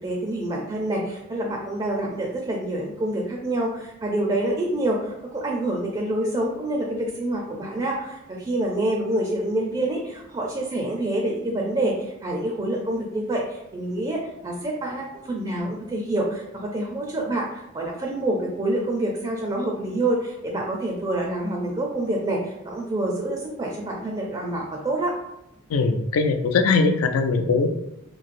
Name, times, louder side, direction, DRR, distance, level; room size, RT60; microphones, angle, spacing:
voice 1, 0.0-25.1, right 1 dB, 20° right, -1 dB, 0.4 m, -27 dB
voice 2, 25.7-27.7, left 4 dB, 80° left, 7 dB, 0.4 m, -21 dB
3.1 x 2.6 x 2.5 m, 0.88 s
head